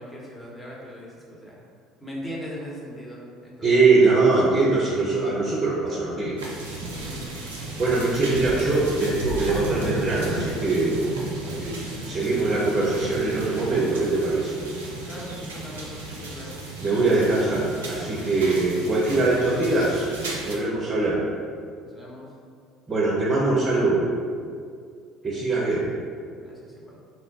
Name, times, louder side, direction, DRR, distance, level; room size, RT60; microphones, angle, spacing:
voice 1, 0.0-1.6 2.0-4.1 7.0-7.4 11.4-11.6 15.1-16.7 21.8-22.3 26.4-27.0, equal, 15° left, -5 dB, 1.0 m, -40 dB
voice 2, 3.6-6.4 7.8-11.0 11.6-14.5 16.8-20.1 20.4-21.2 22.9-24.1 25.2-25.9, right 3 dB, 25° right, -6 dB, 0.7 m, -22 dB
sound 1, 6.4-20.6, right 2 dB, 85° right, 0.4 m, -34 dB
3.1 x 2.1 x 3.9 m, 2.2 s
figure-of-eight pair, 60°, 0 cm